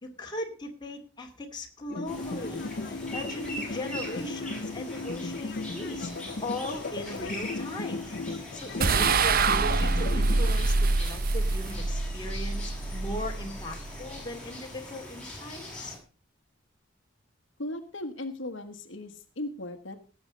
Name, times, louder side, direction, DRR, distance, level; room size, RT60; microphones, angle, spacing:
voice 1, 0.0-2.7 3.1-6.1 6.4-8.0 8.5-15.9, left 1 dB, 20° left, 1 dB, 2.5 m, -38 dB
sound 1, 1.9-10.5, left 3 dB, 50° left, 0.7 m, -36 dB
sound 2, 2.1-16.0, left 1 dB, 5° left, 6.3 m, -42 dB
sound 3, 8.8-14.2, right 3 dB, 45° right, 0.8 m, -26 dB
voice 2, 17.6-20.0, left 1 dB, 70° left, 7 dB, 1.4 m, -37 dB
18.0 x 8.1 x 5.2 m, 0.37 s
head